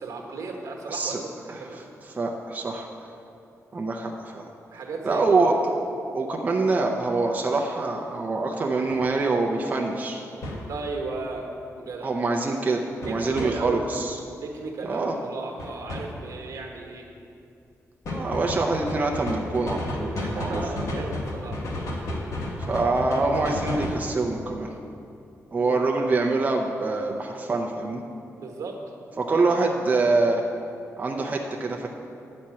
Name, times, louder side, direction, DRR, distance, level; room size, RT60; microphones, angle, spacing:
voice 1, 0.0-1.9 4.7-5.5 10.7-12.1 13.0-13.8 14.4-17.1 20.1-21.6 25.6-25.8 28.4-29.4, right 3 dB, 75° right, 1 dB, 1.2 m, -35 dB
voice 2, 0.9-1.2 1.5-1.6 2.1-2.9 3.7-4.5 5.0-5.6 6.1-10.2 12.0-14.2 14.8-15.2 18.1-20.6 22.7-24.7 25.5-28.0 29.2-30.4 31.0-31.9, right 3 dB, 25° right, 0 dB, 0.6 m, -25 dB
sound 1, 8.9-9.0 10.4-10.6 13.0-13.5 15.6-16.0 18.0-24.0, left 1 dB, 65° left, 1.4 m, -31 dB
9.4 x 4.3 x 7.6 m, 2.6 s
wide cardioid pair, 170°, 6 cm